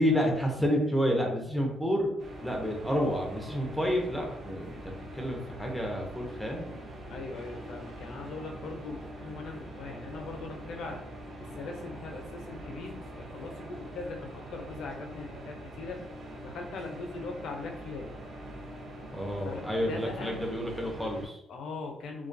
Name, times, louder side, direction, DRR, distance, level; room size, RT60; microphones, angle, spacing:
voice 1, 0.0-2.1 2.4-4.8 5.1-6.7 19.1-21.4, equal, ahead, 0 dB, 0.4 m, -29 dB
sound 1, 2.2-21.3, right 1 dB, 65° right, 0.7 m, -44 dB
voice 2, 7.1-11.0 11.4-16.0 16.4-18.1 19.4-20.4 21.5-22.3, left 3 dB, 70° left, 2 dB, 0.4 m, -40 dB
2.2 x 2.2 x 2.5 m, 0.77 s
cardioid pair, 145°, 0 cm